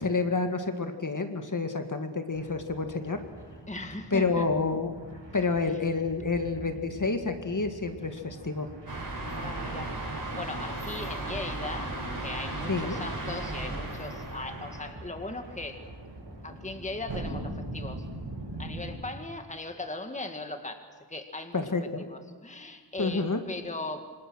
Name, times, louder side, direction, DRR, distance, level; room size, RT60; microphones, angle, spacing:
voice 1, 0.0-3.2 4.1-4.9 5.3-8.7 12.7-13.0 21.5-22.0 23.0-23.4, left 3 dB, 45° left, 6 dB, 2.1 m, -29 dB
sound 1, 2.3-19.0, right 1 dB, 70° right, 7.6 m, -43 dB
voice 2, 3.7-4.5 5.7-5.8 9.3-15.8 16.4-18.1 18.6-20.8 21.1-21.6 22.0-24.1, left 2 dB, 15° left, 6 dB, 1.9 m, -39 dB
sound 2, 8.9-14.9, right 2 dB, 45° right, 7.7 m, -36 dB
27.0 x 26.5 x 6.4 m, 1.5 s
wide cardioid pair, 100°, 44 cm